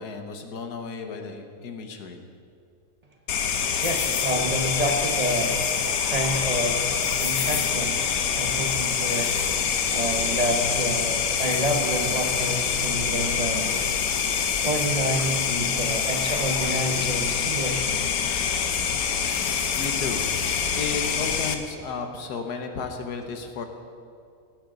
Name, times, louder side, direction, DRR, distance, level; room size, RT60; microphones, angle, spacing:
voice 1, 0.0-2.2 19.8-20.2 20.7-23.7, left 5 dB, 90° left, 5 dB, 1.7 m, -33 dB
sound 1, 3.3-21.5, left 7 dB, 70° left, 1.3 m, -25 dB
voice 2, 3.8-8.0 8.3-9.4 9.9-13.7 14.6-18.0, right 1 dB, 30° right, 2 dB, 1.0 m, -28 dB
18.0 x 9.7 x 3.9 m, 2.4 s
omnidirectional pair, 1.6 m